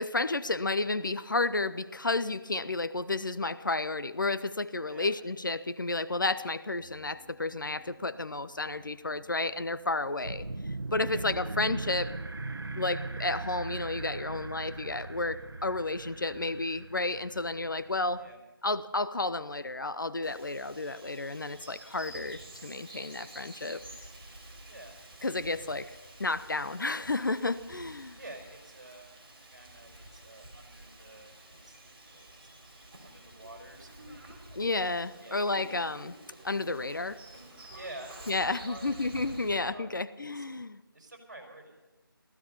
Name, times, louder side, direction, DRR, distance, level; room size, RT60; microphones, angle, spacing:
voice 1, 0.0-10.4 10.9-12.1 12.8-18.2 18.6-23.8 25.2-28.2 34.6-36.1 36.4-37.2 38.3-40.8, left 2 dB, 55° left, 13 dB, 0.7 m, -32 dB
sound 1, 6.8-12.5, equal, 5° right, 4.2 m, -57 dB
sound 2, 10.2-18.3, right 2 dB, 75° right, 1.1 m, -39 dB
Bird vocalization bird call bird song, 20.2-39.6, right 1 dB, 25° right, 3.4 m, -50 dB
voice 2, 28.2-29.1 29.5-31.3 31.6-31.8 32.1-32.4 33.0-34.4 35.2-35.8 37.7-39.0 39.6-40.0 40.3-40.4 40.9-41.8, right 2 dB, 45° right, 1 dB, 5.1 m, -49 dB
16.0 x 15.0 x 5.6 m, 1.1 s
figure-of-eight pair, 165°, 12 cm